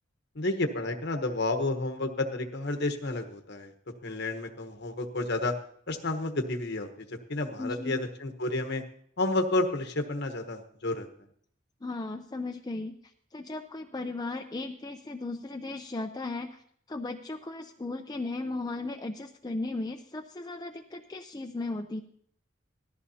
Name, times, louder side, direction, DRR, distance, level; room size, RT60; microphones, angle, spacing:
voice 1, 0.3-3.7 4.0-5.5 5.9-8.8 9.2-11.1, left 2 dB, 60° left, 6 dB, 1.1 m, -31 dB
voice 2, 7.6-8.0 11.8-12.9 13.3-16.6 16.9-22.0, left 2 dB, 20° left, 4 dB, 0.5 m, -36 dB
18.5 x 14.0 x 2.8 m, 0.64 s
head